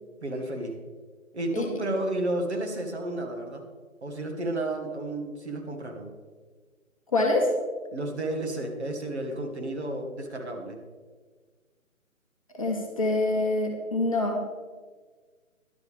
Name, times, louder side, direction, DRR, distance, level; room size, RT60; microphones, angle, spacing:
voice 1, 0.2-0.8 1.3-3.6 4.0-6.1 7.9-10.8, right 1 dB, 50° right, 2 dB, 1.9 m, -32 dB
voice 2, 7.1-7.5 12.5-14.4, left 2 dB, 25° left, 0 dB, 1.1 m, -25 dB
12.0 x 11.5 x 3.6 m, 1.5 s
figure-of-eight pair, 150°, 41 cm